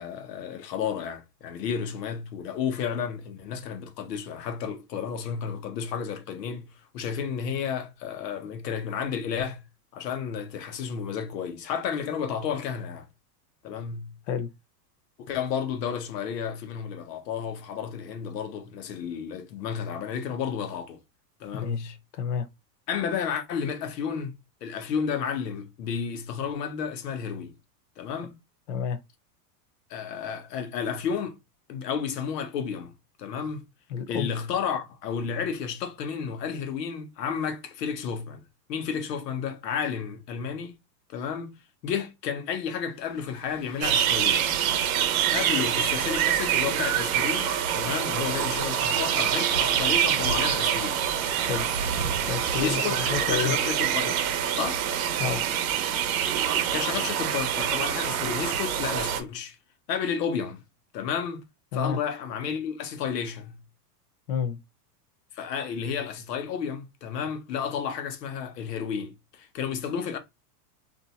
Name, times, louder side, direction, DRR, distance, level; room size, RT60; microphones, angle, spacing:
voice 1, 0.0-9.6 9.9-13.1 13.6-14.2 15.3-21.0 21.4-21.9 22.9-24.3 24.6-27.5 28.0-28.4 29.9-31.4 31.7-32.9 33.2-33.6 34.1-38.4 38.7-40.8 41.1-44.5 45.3-51.0 52.6-54.8 56.7-59.6 59.9-60.6 60.9-61.5 61.7-63.6 65.3-70.2, left 7 dB, 90° left, 1.0 m, -32 dB
voice 2, 21.5-22.5 28.7-29.0 33.9-34.3 51.5-51.7 52.3-53.5 55.2-55.4 61.7-62.0 64.3-64.6, left 7 dB, 50° left, 0.7 m, -30 dB
sound 1, 42.9-55.8, right 1 dB, ahead, 0.6 m, -48 dB
sound 2, 43.8-59.2, right 9 dB, 60° right, 0.8 m, -26 dB
2.7 x 2.1 x 4.0 m
supercardioid pair, 165°, 47 cm